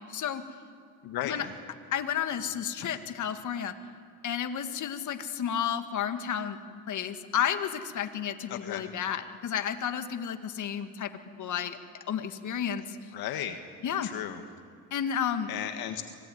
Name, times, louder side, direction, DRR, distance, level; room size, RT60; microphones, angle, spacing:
voice 1, 0.1-0.4 1.3-1.5 1.9-3.7 4.2-6.6 6.9-11.1 11.4-11.8 12.1-13.0 13.8-14.1 14.9-15.5, left 8 dB, 50° left, 8 dB, 2.0 m, -31 dB
voice 2, 1.0-1.5 8.5-8.9 13.1-13.6 14.0-14.4 15.5-16.1, left 11 dB, 70° left, 7 dB, 1.8 m, -35 dB
25.5 x 18.5 x 9.5 m, 2.5 s
supercardioid pair, 80°, 37 cm